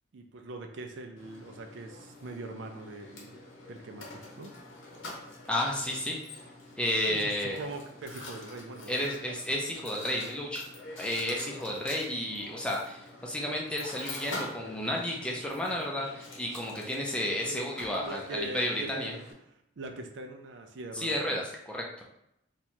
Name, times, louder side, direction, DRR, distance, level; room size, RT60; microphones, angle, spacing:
voice 1, 0.1-4.5 7.0-9.0 9.3-9.4 9.8-10.3 17.5-17.6 18.0-19.2 19.8-21.3, right 2 dB, 70° right, 5 dB, 0.4 m, -42 dB
Mechanisms, 1.2-19.3, left 2 dB, 80° left, 0.9 m, -46 dB
voice 2, 5.5-6.2 6.8-7.6 8.9-10.6 11.0-19.1 20.9-22.0, left 1 dB, 5° left, -2 dB, 0.5 m, -32 dB
2.9 x 2.3 x 4.2 m, 0.80 s
head